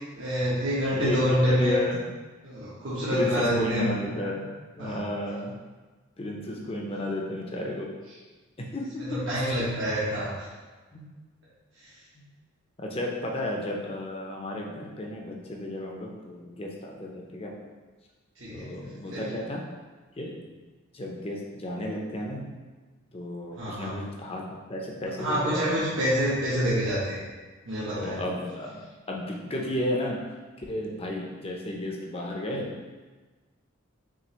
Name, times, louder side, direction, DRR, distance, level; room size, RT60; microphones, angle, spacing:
voice 1, 0.2-1.8 2.4-3.9 4.8-5.0 9.1-10.3 18.4-18.7 19.1-19.3 23.6-24.0 25.2-27.2 27.6-28.2, equal, 65° right, -10 dB, 1.0 m, -27 dB
voice 2, 0.9-2.1 3.1-4.5 4.8-5.6 6.2-7.9 8.6-8.8 9.3-9.6 10.9-11.1 12.2-12.3 12.8-17.5 18.5-19.6 20.2-20.3 20.9-22.4 23.1-24.4 24.7-25.9 28.0-28.8 29.1-30.2 30.6-32.7, left 1 dB, 30° left, -1 dB, 0.6 m, -33 dB
6.0 x 2.5 x 3.1 m, 1.3 s
head